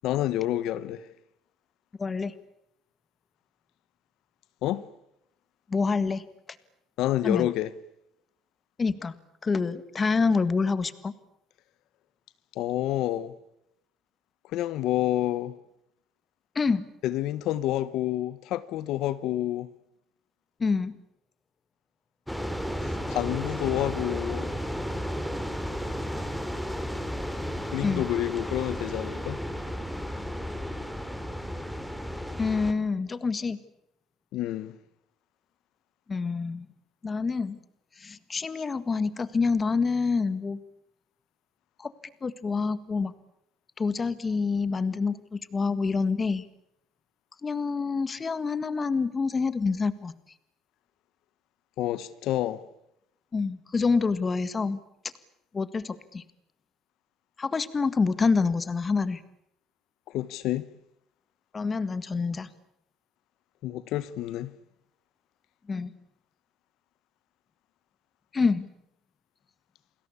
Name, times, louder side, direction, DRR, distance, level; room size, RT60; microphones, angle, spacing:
voice 1, 0.0-1.1 4.6-4.8 7.0-7.7 12.5-13.3 14.5-15.6 17.0-19.7 22.8-24.5 27.7-29.4 34.3-34.8 51.8-52.6 60.1-60.7 63.6-64.5, left 14 dB, 65° left, 1.2 m, -28 dB
voice 2, 2.0-2.3 5.7-6.2 7.2-7.5 8.8-9.2 9.4-11.1 16.5-16.9 20.6-20.9 27.8-28.1 32.4-33.6 36.1-36.6 37.0-37.6 38.0-40.6 41.8-41.9 42.2-43.1 43.8-46.5 47.4-50.1 53.3-54.8 55.5-56.2 57.4-59.2 61.5-62.5 65.7-65.9 68.3-68.7, left 4 dB, 20° left, 1.7 m, -27 dB
sound 1, 22.3-32.7, equal, ahead, 2.8 m, -33 dB
29.5 x 21.0 x 8.5 m
cardioid pair, 140°, 0 cm